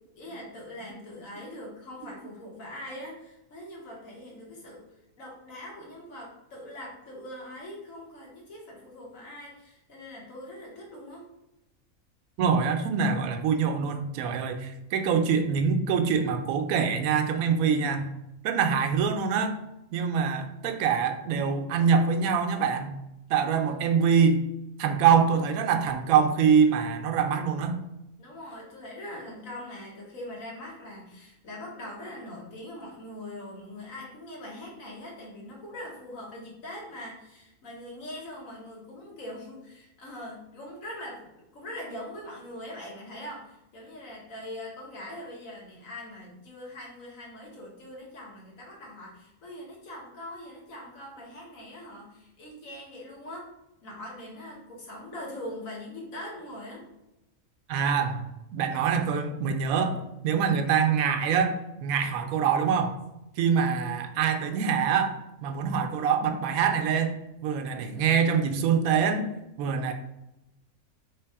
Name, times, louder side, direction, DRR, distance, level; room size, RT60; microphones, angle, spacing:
voice 1, 0.2-4.8 5.2-11.3 23.4-24.1 28.2-53.5 53.8-56.8, left 1 dB, 60° left, -2 dB, 1.6 m, -42 dB
voice 2, 12.4-18.0 18.4-19.5 19.9-22.9 23.3-24.4 24.8-27.8 57.7-58.2 58.5-63.0 63.4-69.3 69.6-69.9, right 6 dB, 75° right, 6 dB, 1.0 m, -24 dB
3.3 x 3.2 x 4.6 m, 0.92 s
omnidirectional pair, 1.6 m